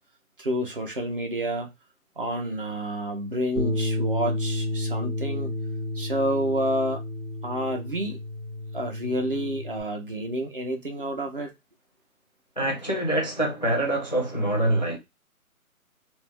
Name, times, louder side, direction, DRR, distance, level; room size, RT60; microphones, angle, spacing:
voice 1, 0.4-1.7 2.2-5.5 5.9-7.0 7.4-8.2 8.7-11.5, equal, 40° right, 0.6 m, -29 dB
Bass guitar, 3.6-9.8, left 1 dB, 15° right, 0.9 m, -31 dB
voice 2, 12.6-15.0, right 1 dB, 30° left, 0.4 m, -25 dB
2.4 x 2.1 x 3.3 m
hypercardioid pair, 165°, 42 cm